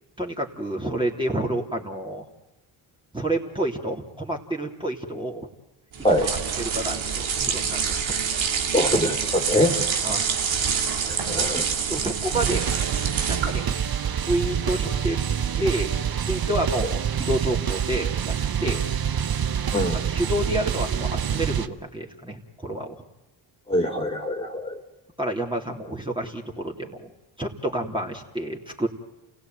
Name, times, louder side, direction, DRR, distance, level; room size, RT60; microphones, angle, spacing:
voice 1, 0.2-2.2 3.1-5.5 6.2-8.1 10.0-10.3 11.3-11.5 11.9-12.7 13.3-13.7 14.2-15.2 15.6-16.0 16.2-18.3 18.6-18.9 19.9-23.0 25.2-27.1 27.4-28.9, right 1 dB, 10° right, -1 dB, 3.4 m, -29 dB
sound 1, 5.9-13.7, right 6 dB, 65° right, 2.4 m, -26 dB
voice 2, 8.7-9.7 11.3-11.6 19.7-20.0 23.7-24.8, left 1 dB, 10° left, 4 dB, 3.4 m, -23 dB
sound 2, 12.3-21.7, right 8 dB, 45° right, 1.2 m, -26 dB
28.5 x 17.0 x 9.4 m, 1.0 s
supercardioid pair, 60°, 50 cm